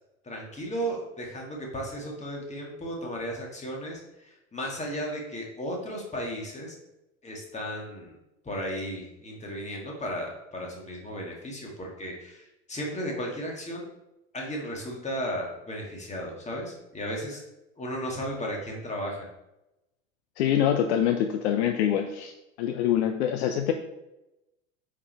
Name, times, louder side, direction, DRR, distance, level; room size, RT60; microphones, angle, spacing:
voice 1, 0.2-6.7 7.2-8.2 8.4-13.9 14.3-17.4 17.8-19.3, equal, 15° left, -1 dB, 2.1 m, -35 dB
voice 2, 20.4-22.3 22.6-23.7, left 10 dB, 55° left, 6 dB, 0.7 m, -25 dB
8.3 x 4.9 x 3.4 m, 0.93 s
figure-of-eight pair, 75°, 40 cm